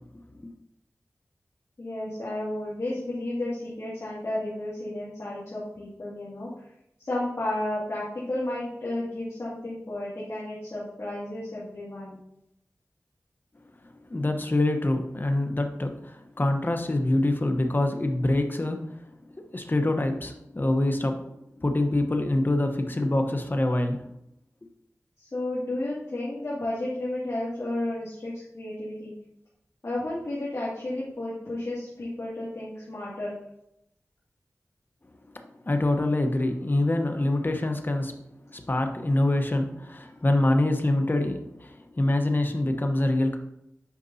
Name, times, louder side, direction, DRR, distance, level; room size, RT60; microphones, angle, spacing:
voice 1, 1.8-6.5 7.0-12.2 25.2-29.1 29.8-33.3, left 1 dB, 60° left, -9 dB, 2.1 m, -32 dB
voice 2, 14.1-19.0 19.5-21.3 21.6-24.0 35.7-38.2 38.5-43.4, left 1 dB, 35° left, 5 dB, 1.0 m, -25 dB
8.3 x 5.3 x 2.8 m, 0.80 s
cardioid pair, 45°, 6 cm